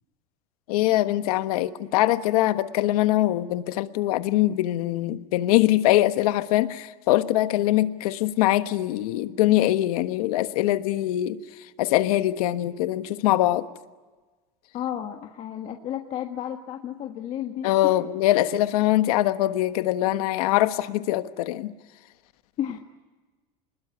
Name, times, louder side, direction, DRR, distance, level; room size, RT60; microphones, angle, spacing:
voice 1, 0.7-11.4 11.8-13.7 17.6-21.7, left 15 dB, 80° left, 11 dB, 1.4 m, -23 dB
voice 2, 14.7-17.9 22.6-22.8, left 10 dB, 35° left, 3 dB, 1.6 m, -32 dB
26.5 x 21.0 x 9.7 m, 1.3 s
supercardioid pair, 150°, 19 cm